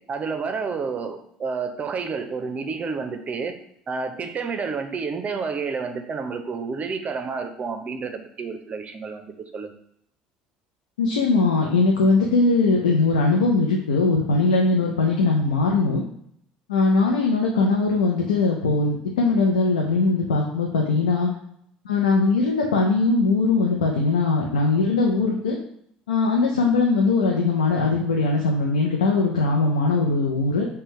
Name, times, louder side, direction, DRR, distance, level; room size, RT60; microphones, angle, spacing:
voice 1, 0.1-3.6 3.9-9.7, right 5 dB, 35° right, 7 dB, 0.6 m, -30 dB
voice 2, 11.0-16.0 16.7-21.3 21.9-25.6 26.1-30.7, left 3 dB, 85° left, -1 dB, 0.5 m, -20 dB
5.4 x 2.2 x 3.1 m, 0.69 s
hypercardioid pair, 65°, 4 cm